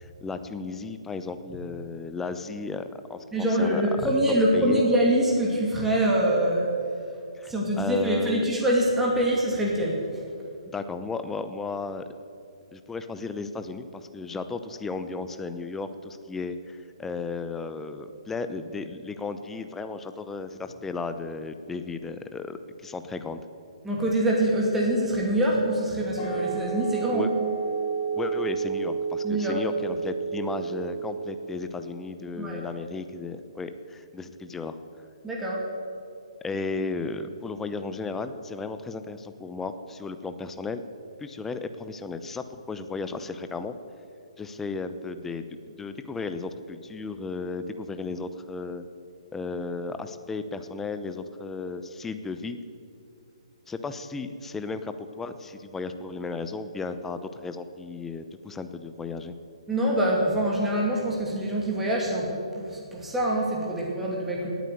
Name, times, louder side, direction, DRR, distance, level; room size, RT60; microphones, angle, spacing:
voice 1, 0.0-4.1 4.5-4.8 7.4-8.4 10.7-12.0 12.7-23.4 27.1-27.3 28.1-34.8 36.4-40.8 41.2-43.7 44.4-48.8 49.3-52.6 53.7-59.4, left 4 dB, 10° left, 10 dB, 0.8 m, -34 dB
voice 2, 3.3-6.7 7.5-10.1 23.8-27.3 29.2-29.6 32.4-32.6 35.2-35.7 59.7-64.5, right 1 dB, 5° right, -3 dB, 2.5 m, -24 dB
sound 1, 26.2-31.6, right 6 dB, 25° left, 4.2 m, -31 dB
18.5 x 9.3 x 8.0 m, 2.5 s
figure-of-eight pair, 130°, 3 cm